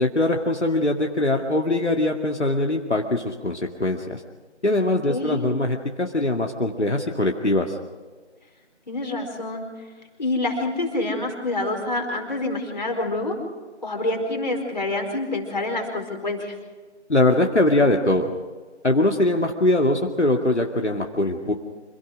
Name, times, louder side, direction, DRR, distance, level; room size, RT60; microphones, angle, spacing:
voice 1, 0.0-4.2 4.6-7.8 17.1-18.3 18.8-21.5, left 2 dB, 75° left, 1 dB, 2.3 m, -22 dB
voice 2, 4.8-5.4 8.9-9.7 10.2-13.4 13.8-16.5, left 2 dB, 40° left, 2 dB, 4.7 m, -27 dB
27.0 x 17.0 x 6.4 m, 1.4 s
figure-of-eight pair, 165°, 35 cm